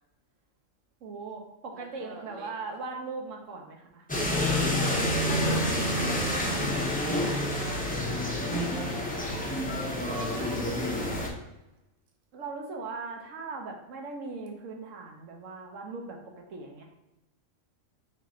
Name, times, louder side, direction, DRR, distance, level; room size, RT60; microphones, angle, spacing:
voice 1, 1.0-4.0 4.3-4.8 10.2-10.9 12.3-16.2 16.5-16.8, right 3 dB, 70° right, 1 dB, 1.1 m, -39 dB
voice 2, 1.7-2.5 4.1-5.3 5.7-9.2 10.0-10.9, right 3 dB, 55° right, 2 dB, 0.8 m, -48 dB
sound 1, 4.1-11.3, left 1 dB, 15° left, 0.3 m, -28 dB
3.9 x 2.5 x 4.2 m, 0.96 s
omnidirectional pair, 1.4 m